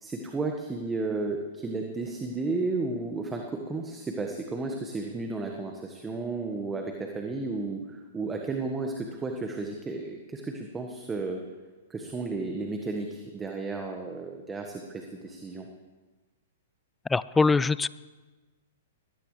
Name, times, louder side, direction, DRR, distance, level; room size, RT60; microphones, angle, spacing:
voice 1, 0.0-11.4 11.9-15.7, right 3 dB, 15° right, 3 dB, 1.5 m, -33 dB
voice 2, 17.1-17.9, left 4 dB, 10° left, 19 dB, 0.4 m, -22 dB
22.0 x 17.0 x 3.3 m, 1.3 s
hypercardioid pair, 110°, 0 cm